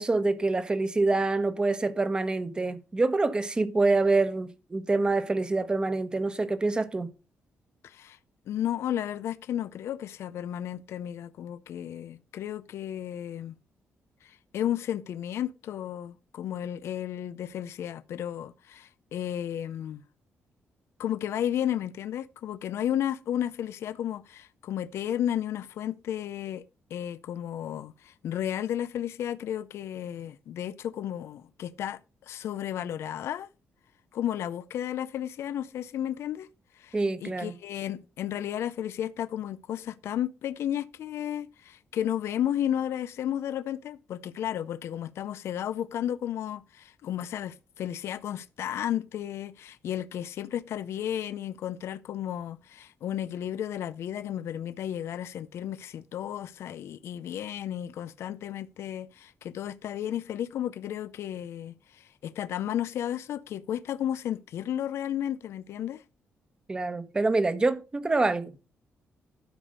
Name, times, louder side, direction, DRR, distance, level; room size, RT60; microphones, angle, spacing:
voice 1, 0.0-7.1 36.9-37.5 66.7-68.5, right 3 dB, 20° right, 1.1 m, -26 dB
voice 2, 7.8-8.2 8.5-13.6 14.2-20.0 21.0-26.6 26.9-33.5 34.1-36.5 36.7-66.0, left 10 dB, 70° left, 0.5 m, -33 dB
12.0 x 5.1 x 6.5 m
cardioid pair, 140°, 5 cm